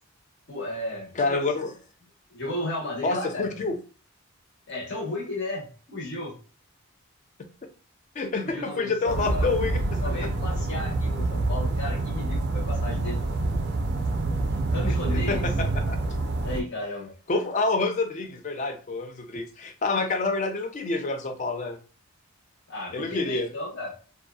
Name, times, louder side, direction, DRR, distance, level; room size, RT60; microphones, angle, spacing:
voice 1, 0.5-1.4 2.3-3.6 4.7-6.3 8.4-9.5 10.0-13.2 14.7-15.4 16.4-17.1 22.7-23.9, left 1 dB, 55° left, -3 dB, 0.9 m, -34 dB
voice 2, 1.2-1.7 3.0-3.8 8.2-9.8 14.9-16.0 17.3-21.8 22.9-23.5, left 3 dB, 35° left, 7 dB, 0.3 m, -27 dB
sound 1, 9.1-16.6, right 2 dB, 50° right, 0.3 m, -27 dB
2.6 x 2.2 x 2.3 m, 0.38 s
head